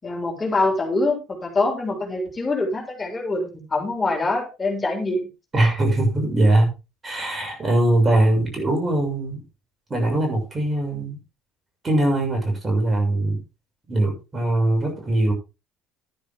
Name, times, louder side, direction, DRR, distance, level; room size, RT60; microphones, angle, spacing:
voice 1, 0.0-5.3, left 2 dB, 25° left, 1 dB, 7.1 m, -24 dB
voice 2, 5.5-6.7 7.0-9.4 9.9-11.2 11.8-13.4 13.9-15.3, right 1 dB, 30° right, 3 dB, 7.1 m, -21 dB
13.0 x 10.5 x 3.8 m, 0.29 s
hypercardioid pair, 70°, 0 cm